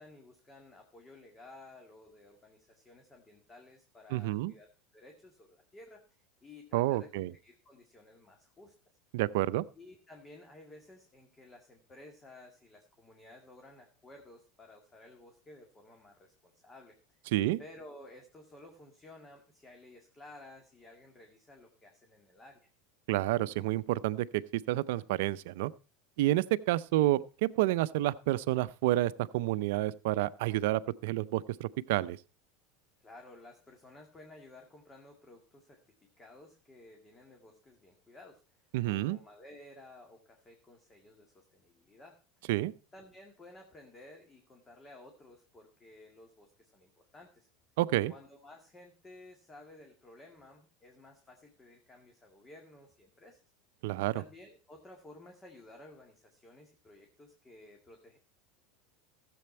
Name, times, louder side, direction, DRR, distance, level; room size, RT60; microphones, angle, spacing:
voice 1, 0.0-8.7 9.8-17.3 17.6-22.6 33.0-42.2 42.9-47.5 48.1-53.4 54.1-58.2, left 2 dB, 20° left, 2.0 m, -55 dB
voice 2, 4.1-4.5 6.7-7.3 9.1-9.7 17.3-17.6 23.1-24.4 24.7-25.7 26.2-32.2 38.7-39.2 42.5-42.7 47.8-48.1 53.8-54.2, right 16 dB, 70° right, 0.5 m, -29 dB
14.0 x 7.8 x 4.3 m
hypercardioid pair, 100°, 0 cm